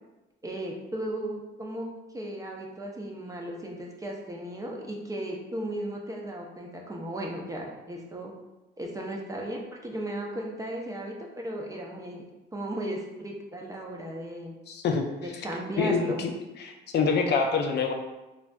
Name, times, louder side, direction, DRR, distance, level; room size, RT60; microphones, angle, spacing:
voice 1, 0.4-8.3 8.8-12.2 12.5-14.5 15.2-16.2, right 1 dB, 15° right, -1 dB, 0.5 m, -35 dB
voice 2, 14.7-15.1 15.3-15.4 15.8-16.3 16.6-17.9, left 5 dB, 60° left, 4 dB, 0.4 m, -26 dB
3.2 x 2.5 x 2.2 m, 1.0 s
cardioid pair, 90°, 20 cm